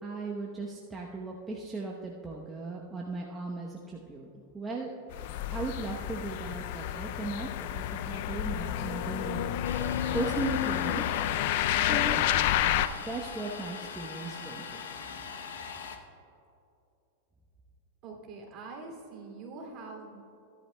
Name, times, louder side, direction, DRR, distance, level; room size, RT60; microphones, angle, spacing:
voice 1, 0.0-4.3 4.5-4.9 5.5-11.0 11.7-12.2 13.0-14.8, right 3 dB, 15° right, -3 dB, 0.9 m, -37 dB
sound 1, 5.1-12.9, left 12 dB, 60° left, 0.4 m, -30 dB
Domestic sounds home sounds, 9.6-16.0, left 6 dB, 85° left, 0.8 m, -41 dB
voice 2, 18.0-20.2, right 3 dB, 40° right, 0 dB, 2.6 m, -44 dB
16.0 x 11.0 x 2.3 m, 2.7 s
hypercardioid pair, 125°, 0 cm